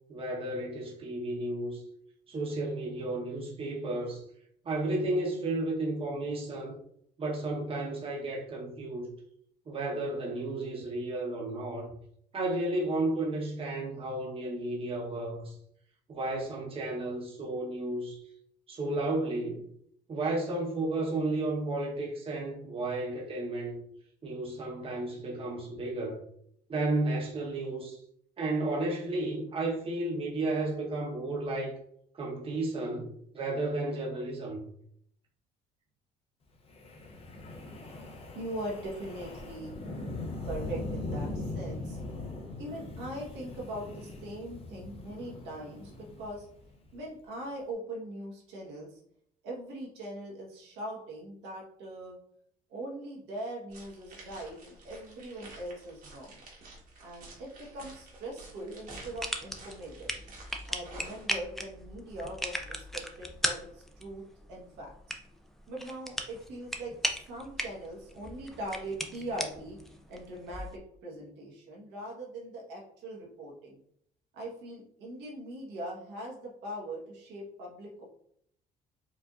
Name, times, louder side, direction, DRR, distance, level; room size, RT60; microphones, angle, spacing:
voice 1, 0.1-1.8 2.3-4.2 4.6-6.7 7.2-9.1 9.7-11.9 12.3-15.5 16.1-18.2 18.7-19.6 20.1-23.8 24.2-26.2 26.7-28.0 28.4-31.7 32.2-34.7, right 2 dB, 35° right, 0.9 m, -33 dB
Wind, 36.7-47.0, left 2 dB, 35° left, 0.8 m, -40 dB
voice 2, 38.3-39.8 40.4-42.0 42.6-46.5 46.9-49.0 49.4-52.2 52.7-56.4 57.0-60.1 60.7-65.2 65.7-73.8 74.3-78.0, right 1 dB, 90° right, 1.2 m, -41 dB
sound 1, 53.7-61.3, right 2 dB, 55° right, 1.2 m, -51 dB
sound 2, 58.9-70.8, equal, ahead, 0.4 m, -38 dB
4.6 x 2.6 x 2.4 m
cardioid pair, 110°, 17 cm